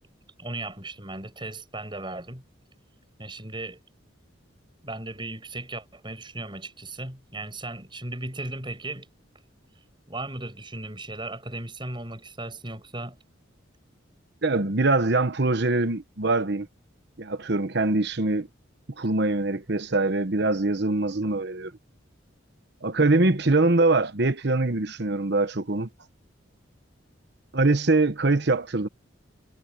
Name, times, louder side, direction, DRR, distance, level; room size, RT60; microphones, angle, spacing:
voice 1, 0.4-2.4 3.2-3.8 4.8-9.1 9.7-13.2, right 2 dB, 25° right, 7.5 m, -36 dB
voice 2, 14.4-16.7 17.2-18.5 19.0-21.7 22.8-25.9 27.5-28.9, right 2 dB, 60° right, 1.1 m, -23 dB
head